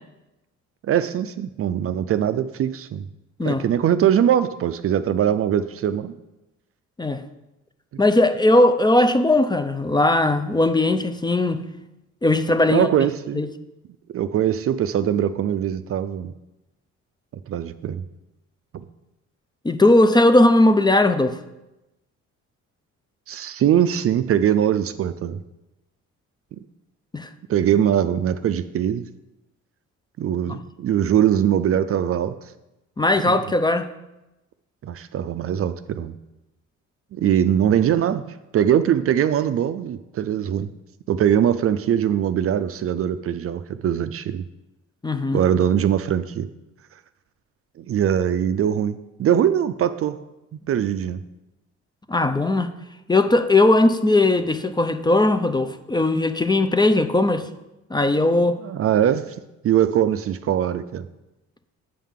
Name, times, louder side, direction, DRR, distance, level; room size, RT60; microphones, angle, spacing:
voice 1, 0.8-3.1 3.4-6.1 7.9-8.0 12.7-13.4 14.1-16.3 17.5-18.0 18.7-18.8 23.3-25.4 27.5-29.0 30.2-32.3 33.2-33.4 34.8-36.1 37.1-38.2 38.5-40.7 41.1-44.4 45.3-46.5 47.8-50.2 50.7-51.2 58.6-59.4 59.6-61.1, right 10 dB, 50° right, 12 dB, 0.4 m, -21 dB
voice 2, 8.0-11.6 12.2-12.9 13.3-13.5 19.6-21.4 27.1-27.3 30.5-30.6 33.0-33.9 45.0-45.4 52.1-52.7 53.1-57.5 57.9-58.6, left 2 dB, 15° left, 10 dB, 0.4 m, -18 dB
8.5 x 5.6 x 3.6 m, 0.96 s
cardioid pair, 90°, 30 cm